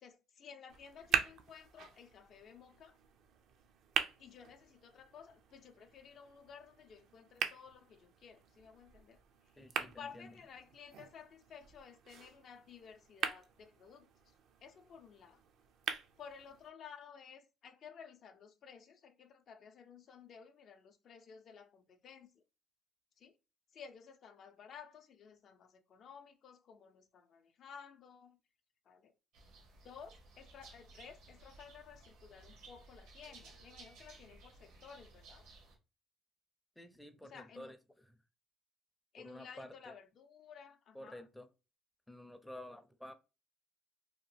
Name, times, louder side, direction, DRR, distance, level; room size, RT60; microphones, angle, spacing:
voice 1, 0.0-3.0 4.2-9.2 9.8-14.1 14.6-15.4 16.2-22.4 23.2-23.3 23.7-28.4 28.9-29.1 29.8-35.5 37.2-37.7 39.1-41.2, left 7 dB, 55° left, 0.5 m, -55 dB
sound 1, 0.7-16.7, right 7 dB, 65° right, 0.4 m, -43 dB
voice 2, 9.6-10.4 36.8-38.2 39.2-39.9 40.9-41.5 42.1-43.1, left 1 dB, 5° left, 0.5 m, -51 dB
sound 2, 29.3-35.8, right 3 dB, 90° right, 0.9 m, -58 dB
2.8 x 2.2 x 3.1 m
supercardioid pair, 80°, 0 cm